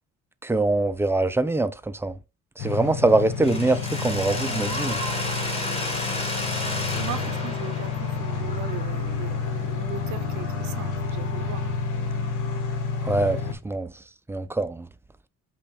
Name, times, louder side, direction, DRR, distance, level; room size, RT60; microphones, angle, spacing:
voice 1, 0.4-2.2 2.6-5.0 13.0-13.9 14.3-14.9, right 2 dB, 10° right, 0.3 m, -23 dB
sound 1, 2.6-13.5, left 5 dB, 85° left, 1.1 m, -29 dB
Mechanisms, 3.4-9.3, left 1 dB, 20° left, 1.4 m, -32 dB
sound 2, 5.1-10.2, left 1 dB, 55° left, 2.0 m, -47 dB
voice 2, 7.0-11.7, right 12 dB, 75° right, 0.6 m, -38 dB
5.4 x 2.3 x 4.1 m
cardioid pair, 90°, 30 cm